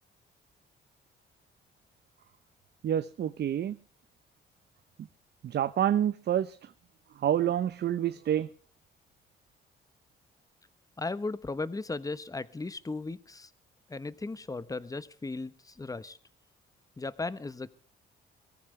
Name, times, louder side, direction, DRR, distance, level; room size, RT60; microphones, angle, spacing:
voice 1, 2.8-3.8 5.4-6.6 7.2-8.5, right 10 dB, 55° right, 0.8 m, -27 dB
voice 2, 11.0-13.5 13.9-16.2 17.0-17.7, left 3 dB, 15° left, 1.1 m, -36 dB
22.0 x 14.5 x 3.3 m
cardioid pair, 90°, 20 cm